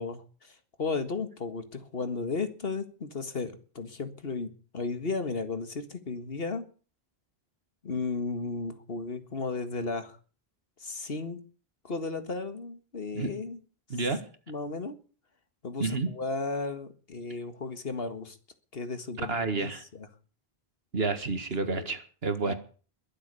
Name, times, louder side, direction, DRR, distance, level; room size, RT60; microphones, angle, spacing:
voice 1, 0.0-6.7 7.8-10.2 10.8-11.4 11.8-13.6 14.5-15.0 15.6-18.4 18.7-20.1 21.6-21.9 22.4-22.5, left 4 dB, 65° left, 9 dB, 2.0 m, -34 dB
voice 2, 13.9-14.2 15.8-16.1 19.3-19.8 20.9-22.5, right 3 dB, 70° right, 9 dB, 2.1 m, -30 dB
22.5 x 7.7 x 6.9 m, 0.40 s
omnidirectional pair, 1.0 m